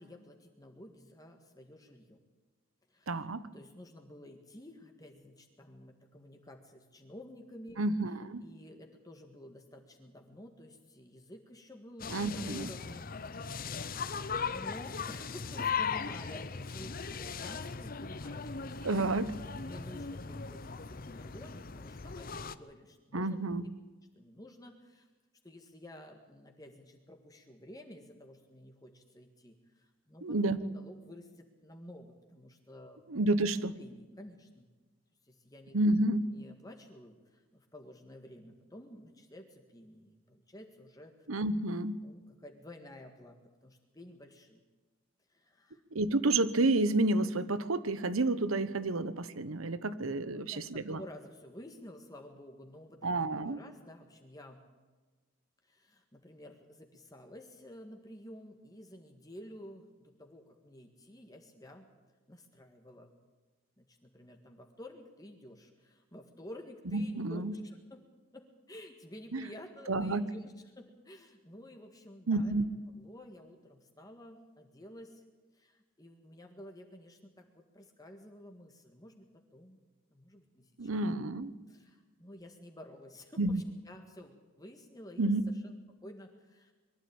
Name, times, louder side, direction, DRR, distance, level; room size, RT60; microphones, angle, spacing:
voice 1, 0.0-2.2 2.9-3.3 3.5-13.1 14.5-18.8 19.6-23.4 24.1-25.1 25.4-33.0 33.8-34.7 35.2-35.8 36.3-41.1 42.0-44.6 45.3-45.8 50.3-54.6 55.6-61.9 62.3-63.1 63.8-68.0 68.3-72.5 73.0-75.2 75.5-79.8 80.1-81.1 81.7-85.3 86.0-86.7, left 1 dB, 20° left, 4 dB, 1.7 m, -52 dB
voice 2, 3.1-3.4 7.8-8.4 12.1-12.7 18.8-19.3 23.1-23.7 30.2-30.6 33.1-33.8 35.7-36.3 41.3-42.0 45.9-51.0 53.0-53.6 66.9-67.5 69.3-69.5 69.9-70.3 72.3-72.7 80.8-81.5 83.4-83.6 85.2-85.4, right 2 dB, 90° right, 14 dB, 1.1 m, -30 dB
sound 1, 12.0-22.5, left 5 dB, 45° left, 0.7 m, -38 dB
23.0 x 13.0 x 8.8 m, 1.3 s
head